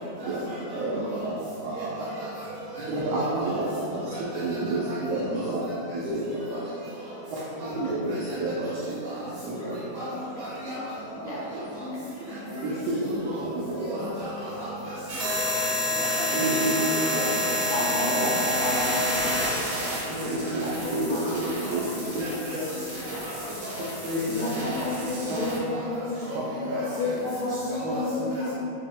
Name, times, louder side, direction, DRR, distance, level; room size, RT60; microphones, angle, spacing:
voice 1, 0.2-0.6 1.1-1.3 1.8-2.4 2.7-2.8 3.1-3.6 4.1-5.0 5.3-5.5 6.5-6.6 7.6-7.7 8.1-8.7 9.0-9.2 9.6-9.7 9.9-10.1 10.4-10.9 11.2-11.4 12.3-12.4 13.2-13.4 13.9-15.6 16.0-16.6 17.0-17.2 17.5-17.7 18.1-18.5 19.1-19.8 20.2-20.6 21.1-21.3 21.6-21.8 22.2-22.6 23.1-23.8 24.1-24.2 24.5-24.8 25.7-26.4 26.7-26.8 27.7-28.0 28.3-28.4, right 1 dB, 75° right, -8 dB, 1.5 m, -37 dB
voice 2, 0.7-1.3 1.6-1.9 2.8-3.6 3.9-5.6 5.9-6.6 7.6-8.1 8.4-8.7 9.4-9.6 11.5-11.7 12.6-13.2 13.7-14.1 16.3-17.2 18.1-18.2 20.1-21.1 21.6-21.8 22.1-22.7 24.0-24.6 25.3-25.4 26.7-26.8 27.8-27.9, right 2 dB, 90° right, -7 dB, 1.3 m, -29 dB
voice 3, 11.2-12.0 12.4-12.8 17.7-19.1 19.8-19.9 20.6-21.4 23.1-23.2 24.3-26.7 27.0-28.5, left 2 dB, 85° left, -8 dB, 2.9 m, -31 dB
sound 1, 15.1-25.6, left 1 dB, 60° right, 1.9 m, -29 dB
sound 2, 20.6-24.7, left 2 dB, 70° left, 1.3 m, -44 dB
5.8 x 2.1 x 4.2 m, 2.8 s
omnidirectional pair, 3.6 m